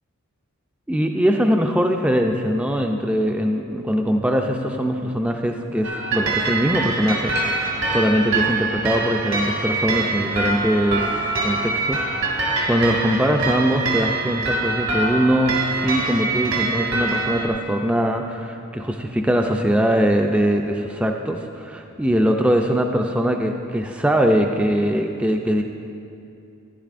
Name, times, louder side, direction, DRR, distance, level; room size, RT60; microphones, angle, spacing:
voice 1, 0.9-25.6, equal, 5° right, 3 dB, 0.3 m, -22 dB
sound 1, 5.8-17.5, right 3 dB, 75° right, 1.6 m, -24 dB
13.5 x 11.0 x 2.5 m, 2.6 s
head